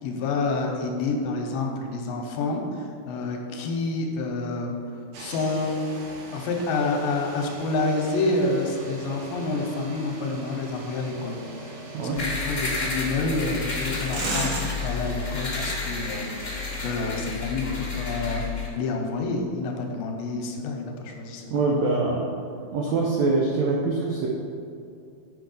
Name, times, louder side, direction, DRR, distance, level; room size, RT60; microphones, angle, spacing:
voice 1, 0.0-4.8 5.2-5.9 6.3-11.7 12.0-21.6, left 3 dB, 80° left, 2 dB, 2.4 m, -28 dB
sound 1, 5.1-17.2, right 2 dB, 70° right, 1.9 m, -38 dB
sound 2, 12.1-18.7, left 4 dB, 55° left, 0.8 m, -31 dB
voice 2, 21.5-22.2 22.7-24.3, right 3 dB, 90° right, -2 dB, 1.5 m, -24 dB
7.9 x 4.6 x 5.3 m, 2.4 s
omnidirectional pair, 4.3 m